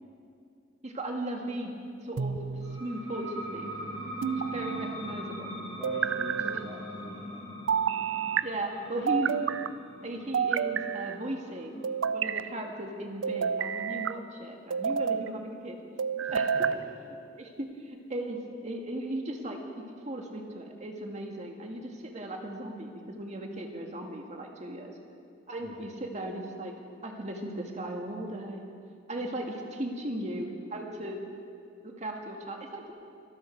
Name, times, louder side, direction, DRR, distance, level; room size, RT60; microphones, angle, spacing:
voice 1, 0.8-1.7 2.0-2.4 2.7-3.7 4.5-5.6 6.5-6.6 8.4-9.3 10.0-11.9 12.1-15.8 16.3-16.7 17.4-19.6 20.0-24.9 25.5-26.7 27.0-28.7 29.1-31.2 31.8-32.9, right 1 dB, 40° right, 2 dB, 1.9 m, -37 dB
sound 1, 2.2-2.8 4.2-5.0 5.8-6.6 7.7-8.4 9.1-9.7 10.3-11.2 11.8-12.5 13.2-14.1 14.7-15.3 16.0-16.8, right 7 dB, 90° right, 0.5 m, -29 dB
sound 2, 2.6-13.9, equal, 70° left, 4.6 m, -42 dB
voice 2, 5.8-7.5 16.3-16.9 25.6-25.8, left 1 dB, 10° right, -7 dB, 2.3 m, -45 dB
24.5 x 12.5 x 4.6 m, 2.3 s
head